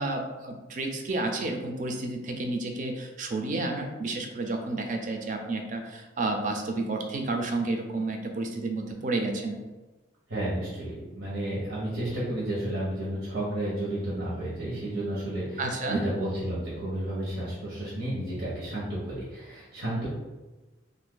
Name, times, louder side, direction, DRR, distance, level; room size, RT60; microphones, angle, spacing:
voice 1, 0.0-9.6 15.6-16.0, right 2 dB, 40° right, 3 dB, 0.4 m, -31 dB
voice 2, 10.3-15.6 15.9-20.1, right 1 dB, 85° right, -8 dB, 1.0 m, -32 dB
2.6 x 2.5 x 3.7 m, 1.2 s
head